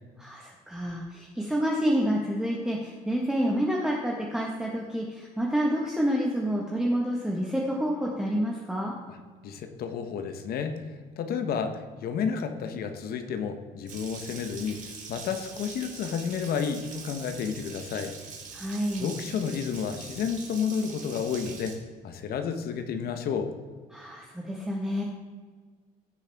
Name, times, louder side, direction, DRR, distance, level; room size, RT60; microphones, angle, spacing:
voice 1, 0.2-8.9 18.5-19.1 23.9-25.0, equal, 5° right, -3 dB, 1.5 m, -28 dB
voice 2, 9.4-10.8 11.2-14.8 15.1-18.1 19.0-21.7 22.0-23.5, left 6 dB, 65° left, 7 dB, 1.1 m, -31 dB
Water tap faucet, 13.9-21.8, right 5 dB, 50° right, 2.4 m, -43 dB
16.0 x 6.4 x 3.5 m, 1.5 s
cardioid pair, 110°, 17 cm